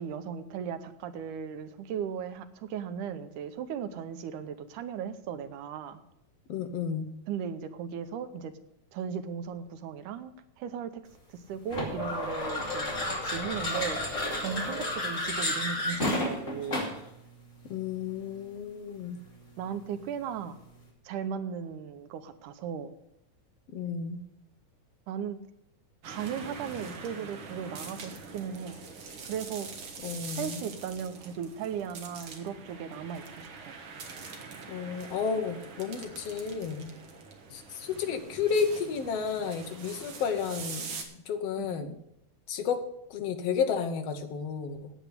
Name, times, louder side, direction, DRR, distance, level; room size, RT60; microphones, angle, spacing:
voice 1, 0.0-6.0 7.3-8.5 8.9-11.0 11.3-14.0 14.4-16.9 19.6-20.6 21.0-22.9 25.1-25.4 26.0-28.8 29.2-29.8 30.4-33.8 41.6-41.9, right 7 dB, 90° right, 10 dB, 2.4 m, -37 dB
voice 2, 6.5-7.1 17.7-19.2 23.7-24.2 30.0-30.6 34.7-36.9 37.5-41.0 41.3-42.0 42.5-42.8 43.1-44.9, left 6 dB, 65° left, 7 dB, 1.8 m, -32 dB
sound 1, 11.7-17.1, left 1 dB, 25° left, 2.8 m, -31 dB
sound 2, 26.0-41.0, right 5 dB, 50° right, 1.9 m, -44 dB
8.9 x 8.2 x 8.3 m, 0.79 s
omnidirectional pair, 3.5 m